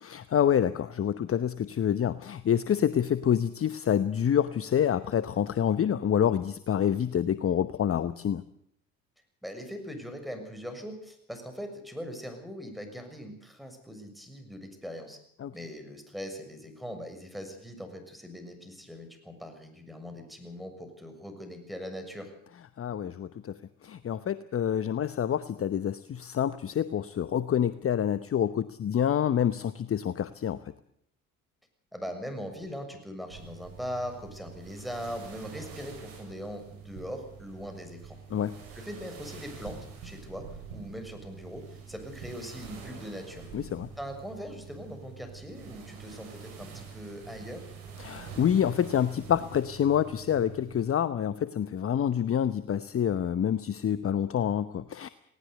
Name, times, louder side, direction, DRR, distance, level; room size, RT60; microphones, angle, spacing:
voice 1, 0.0-8.4 15.4-15.5 22.8-30.6 38.3-38.6 43.5-43.9 48.0-55.1, left 9 dB, 35° left, 15 dB, 0.9 m, -27 dB
voice 2, 9.4-15.2 15.5-22.3 31.9-38.2 38.7-43.4 44.0-47.7, equal, ahead, 5 dB, 6.8 m, -40 dB
sound 1, 33.3-50.9, right 6 dB, 70° right, 7.5 m, -46 dB
19.5 x 18.0 x 8.2 m, 0.68 s
hypercardioid pair, 55°, 41 cm